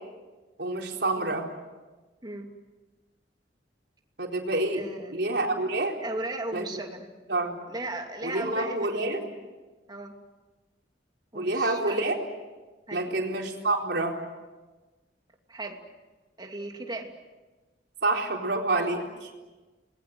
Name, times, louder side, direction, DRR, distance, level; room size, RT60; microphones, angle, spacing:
voice 1, 0.6-1.5 4.2-4.8 5.1-6.0 6.5-6.6 7.3-7.6 8.2-9.2 11.3-12.2 12.9-14.1 18.0-19.3, right 2 dB, 70° right, 1 dB, 4.3 m, -27 dB
voice 2, 4.7-5.1 6.0-7.1 7.7-9.1 9.9-10.1 11.3-12.0 12.9-13.2 15.5-15.8 16.4-17.1, right 2 dB, 25° right, 3 dB, 2.7 m, -36 dB
29.5 x 21.0 x 7.9 m, 1.2 s
head